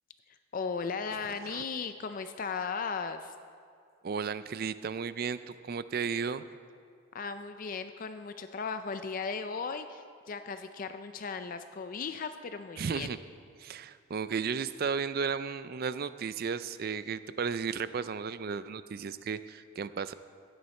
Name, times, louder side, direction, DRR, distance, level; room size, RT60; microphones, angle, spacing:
voice 1, 0.3-3.3 7.1-13.2, left 5 dB, 40° left, 9 dB, 0.4 m, -37 dB
voice 2, 4.0-5.4 5.6-6.4 12.8-13.2 13.6-20.1, right 6 dB, 45° right, 14 dB, 0.3 m, -34 dB
16.0 x 9.6 x 4.3 m, 2.2 s
head